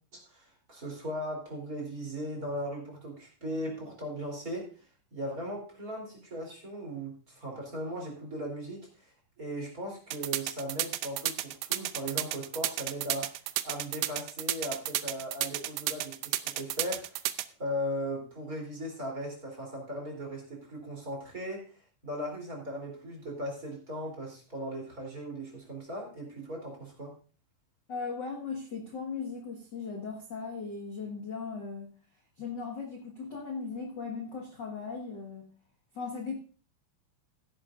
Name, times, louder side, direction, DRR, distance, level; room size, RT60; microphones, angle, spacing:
voice 1, 0.1-9.1 9.4-17.3 17.6-27.1, equal, 25° right, -1 dB, 3.7 m, -38 dB
sound 1, 10.1-17.4, right 15 dB, 80° right, 2.0 m, -32 dB
voice 2, 27.9-31.9 32.4-35.5 35.9-36.3, left 5 dB, 45° left, 0 dB, 1.6 m, -38 dB
15.5 x 10.5 x 2.6 m, 0.39 s
omnidirectional pair, 4.2 m